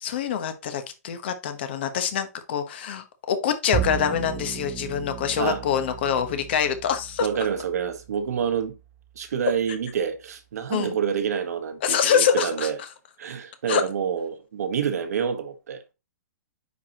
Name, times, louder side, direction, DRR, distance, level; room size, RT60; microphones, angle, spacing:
voice 1, 0.0-7.3 10.7-11.0 11.8-12.7 13.7-13.8, left 8 dB, 40° left, 1.0 m, -25 dB
Bowed string instrument, 3.7-10.2, right 9 dB, 15° right, 0.5 m, -36 dB
voice 2, 7.2-8.7 9.1-12.8 13.2-15.8, right 7 dB, 70° right, 1.4 m, -27 dB
9.4 x 4.7 x 2.9 m
hypercardioid pair, 175°, 9 cm